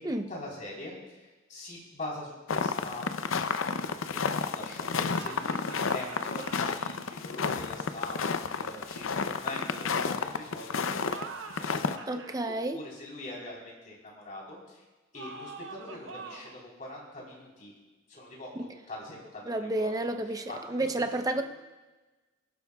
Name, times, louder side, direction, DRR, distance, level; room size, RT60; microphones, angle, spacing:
voice 1, 0.0-3.0 3.3-12.0 12.3-12.4 12.7-14.8 15.1-17.7 18.1-20.9 21.3-21.4, left 1 dB, 40° left, -3 dB, 3.9 m, -43 dB
sound 1, 2.5-11.2 11.5-12.0, left 5 dB, 80° left, 0.6 m, -31 dB
sound 2, 5.1-6.8 10.9-12.4 15.1-16.6, right 4 dB, 65° right, 0.8 m, -44 dB
voice 2, 12.1-12.8 18.6-18.7 19.4-21.4, right 2 dB, 20° right, 6 dB, 0.6 m, -31 dB
21.5 x 11.5 x 2.3 m, 1.2 s
head